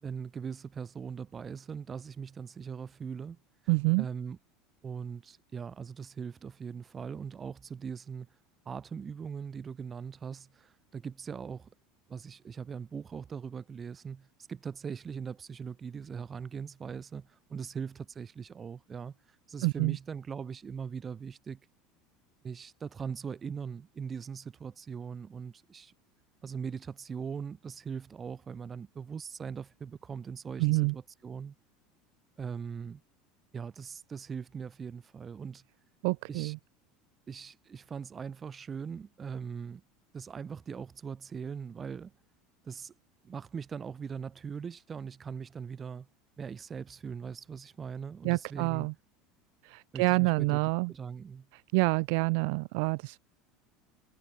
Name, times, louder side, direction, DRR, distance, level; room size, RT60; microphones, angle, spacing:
voice 1, 0.0-3.4 4.0-4.4 4.8-8.3 8.7-11.7 12.1-19.2 19.5-21.6 22.4-25.9 26.4-31.6 32.4-33.0 33.5-35.6 36.3-36.5 37.3-39.8 40.1-42.1 42.6-42.9 43.2-46.1 46.4-48.9 49.9-50.6 50.9-51.5, right 6 dB, 15° right, 2.4 m, -40 dB
voice 2, 3.7-4.1 19.6-20.0 30.6-30.9 36.0-36.6 48.2-48.9 49.6-50.9 51.7-53.2, right 34 dB, 60° right, 0.5 m, -27 dB
cardioid pair, 175°, 0 cm